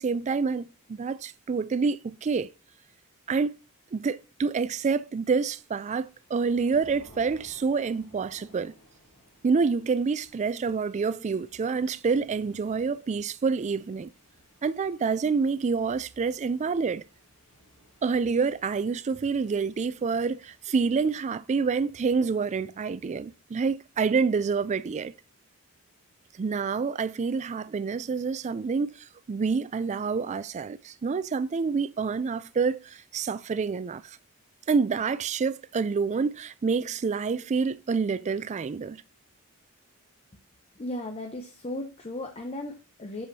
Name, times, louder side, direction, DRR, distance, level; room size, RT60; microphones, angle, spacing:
voice 1, 0.0-2.5 3.3-3.5 3.9-8.7 9.4-14.1 14.6-17.0 18.0-25.1 26.4-34.2 34.7-39.0, right 5 dB, 30° right, 0.3 m, -27 dB
Thunder / Rain, 5.3-21.3, left 1 dB, 65° left, 3.0 m, -59 dB
voice 2, 40.8-43.3, left 1 dB, 30° left, 0.7 m, -36 dB
7.9 x 7.0 x 2.8 m
head